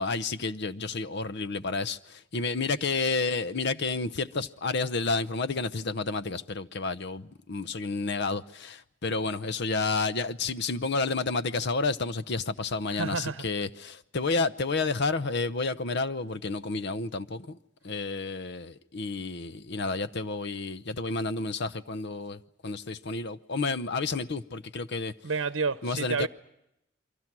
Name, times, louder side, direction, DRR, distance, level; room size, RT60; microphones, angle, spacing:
voice 1, 0.0-17.6 17.8-25.1 25.8-26.3, left 3 dB, 60° left, 0.9 m, -30 dB
voice 2, 12.9-13.4 25.2-26.3, right 4 dB, 80° right, 0.8 m, -30 dB
29.5 x 23.5 x 6.1 m
head